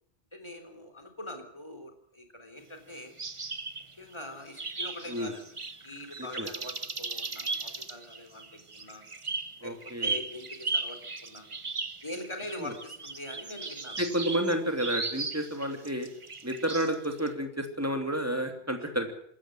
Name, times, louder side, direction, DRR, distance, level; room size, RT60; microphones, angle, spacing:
voice 1, 0.3-3.1 4.0-5.5 5.8-9.0 9.6-11.5 12.0-14.0, left 1 dB, 25° left, 6 dB, 3.7 m, -43 dB
sound 1, 3.2-4.1 4.6-17.3, right 4 dB, 30° right, 1.1 m, -37 dB
voice 2, 9.6-10.2 12.6-12.7 14.0-16.1 16.4-19.1, right 1 dB, 15° right, 5 dB, 3.0 m, -30 dB
25.5 x 14.0 x 7.7 m, 0.67 s
omnidirectional pair, 1.1 m